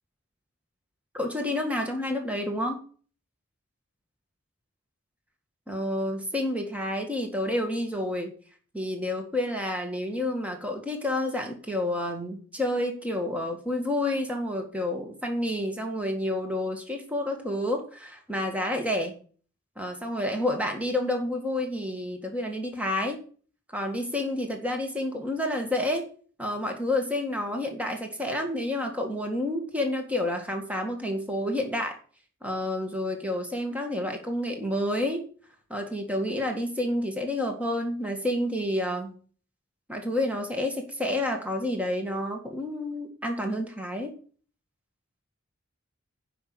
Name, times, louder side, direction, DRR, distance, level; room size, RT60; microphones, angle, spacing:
voice 1, 1.1-2.8 5.7-8.3 8.7-19.1 19.8-23.2 23.7-26.0 26.4-32.0 32.4-35.2 35.7-39.1 39.9-44.1, left 1 dB, 5° right, 3 dB, 1.8 m, -29 dB
10.0 x 5.9 x 7.8 m, 0.42 s
head